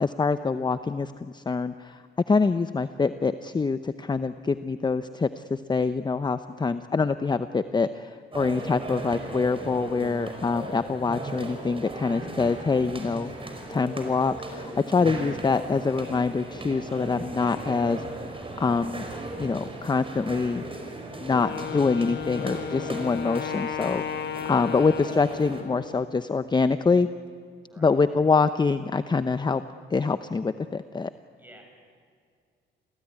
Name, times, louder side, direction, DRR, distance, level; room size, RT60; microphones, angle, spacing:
voice 1, 0.0-2.0 2.3-13.3 13.7-18.0 18.6-19.0 19.4-20.6 21.2-24.2 24.5-27.1 27.8-29.6 29.9-31.1, left 4 dB, 20° left, 11 dB, 0.7 m, -25 dB
sound 1, 8.3-25.6, right 2 dB, 25° right, 5.0 m, -37 dB
Wind instrument woodwind instrument, 21.3-26.1, left 8 dB, 60° left, 1.4 m, -34 dB
voice 2, 27.7-28.0 31.4-31.6, right 1 dB, 10° right, 2 dB, 7.9 m, -51 dB
28.5 x 16.5 x 9.8 m, 2.2 s
cardioid pair, 90°, 20 cm